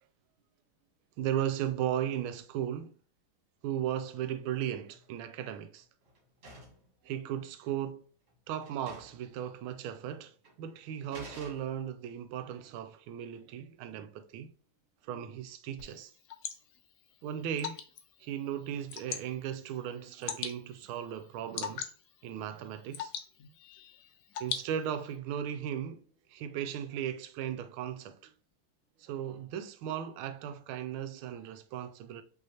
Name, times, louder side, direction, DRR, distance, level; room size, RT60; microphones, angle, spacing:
voice 1, 1.2-2.9 3.6-5.9 7.0-8.1 8.5-14.5 15.0-16.1 17.2-17.8 18.2-21.9 22.2-23.1 24.4-26.0 26.3-28.3 29.0-32.2, right 10 dB, 80° right, 1.4 m, -36 dB
sound 1, 4.9-5.2 5.6-6.9 7.8-7.9 8.3-8.4 8.6-9.3 9.6-9.7 10.4-10.6 11.1-12.0, right 1 dB, 40° right, 1.4 m, -51 dB
Water / Drip, 15.8-25.2, left 8 dB, 75° left, 0.9 m, -43 dB
5.6 x 3.2 x 2.8 m
omnidirectional pair, 2.3 m